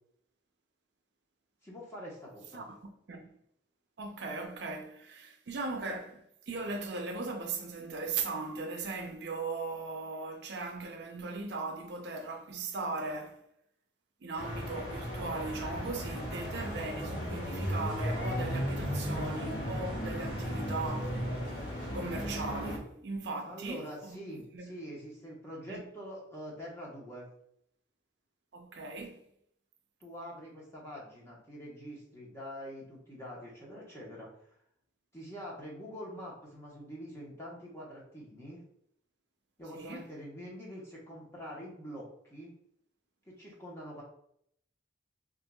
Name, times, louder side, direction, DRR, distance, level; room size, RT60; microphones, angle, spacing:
voice 1, 1.6-2.6 23.4-27.3 30.0-34.3 35.1-38.6 39.6-42.5 43.3-44.0, equal, 15° left, 0.9 m, -45 dB
voice 2, 4.0-13.4 14.2-21.4 21.9-24.2 24.5-24.7 25.7-25.8 28.5-29.2 39.7-40.0, right 3 dB, 65° right, 0.5 m, -38 dB
sound 1, 14.4-22.8, equal, 85° left, 1.0 m, -35 dB
4.4 x 2.5 x 2.2 m
head